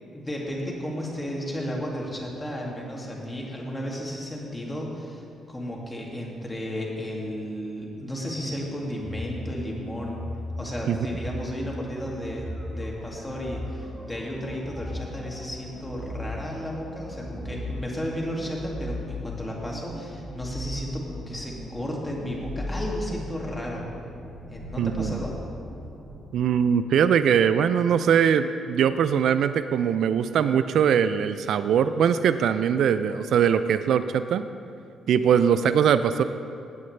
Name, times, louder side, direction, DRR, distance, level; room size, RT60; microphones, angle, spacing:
voice 1, 0.1-10.2 10.6-23.8 24.5-25.4, equal, 15° left, -2 dB, 2.2 m, -33 dB
sound 1, 9.0-26.2, left 1 dB, 10° right, 1.8 m, -37 dB
voice 2, 24.8-25.2 26.3-34.4 35.1-36.2, right 8 dB, 70° right, 12 dB, 0.3 m, -21 dB
16.0 x 8.6 x 3.3 m, 2.5 s
cardioid pair, 90°, 0 cm